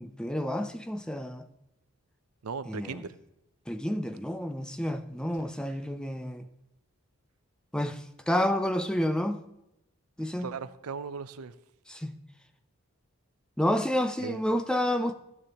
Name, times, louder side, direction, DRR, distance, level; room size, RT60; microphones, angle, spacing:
voice 1, 0.0-1.5 2.7-3.0 3.7-6.5 7.7-9.4 10.2-10.5 11.9-12.1 13.6-15.1, left 1 dB, 5° left, 0.5 m, -30 dB
voice 2, 2.4-3.2 10.4-11.5 14.2-14.4, right 5 dB, 90° right, 0.6 m, -37 dB
14.5 x 9.7 x 3.0 m
head